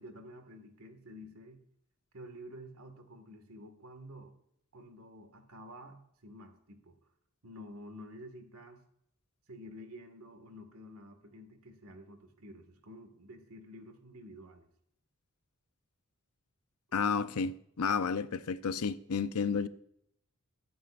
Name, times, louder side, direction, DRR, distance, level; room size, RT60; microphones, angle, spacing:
voice 1, 0.0-1.6 2.1-4.3 4.7-7.0 7.4-8.8 9.5-14.7, equal, 75° right, 1.8 m, -50 dB
voice 2, 16.9-19.7, left 5 dB, 90° left, 0.6 m, -31 dB
21.5 x 9.2 x 2.5 m
head